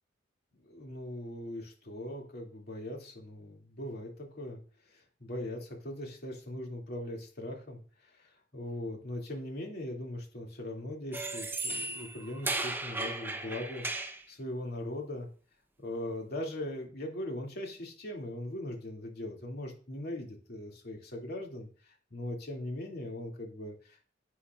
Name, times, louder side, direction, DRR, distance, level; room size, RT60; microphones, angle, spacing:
voice 1, 0.6-4.6 4.9-13.9 14.3-15.3 15.8-24.1, left 1 dB, 55° left, 1 dB, 2.6 m, -40 dB
sound 1, 11.1-14.2, right 2 dB, 10° right, 0.8 m, -36 dB
11.0 x 8.2 x 2.5 m, 0.39 s
head